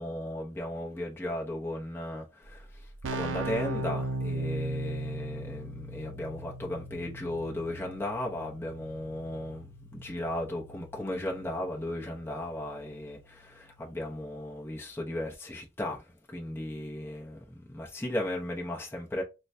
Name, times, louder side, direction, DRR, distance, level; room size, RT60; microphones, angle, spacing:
voice 1, 0.0-2.7 3.1-16.0 16.3-19.2, left 1 dB, 10° left, 0.7 m, -36 dB
Keyboard (musical), 2.4-2.5 2.7-13.4, right 1 dB, 80° right, 0.5 m, -38 dB
4.5 x 2.2 x 2.6 m
head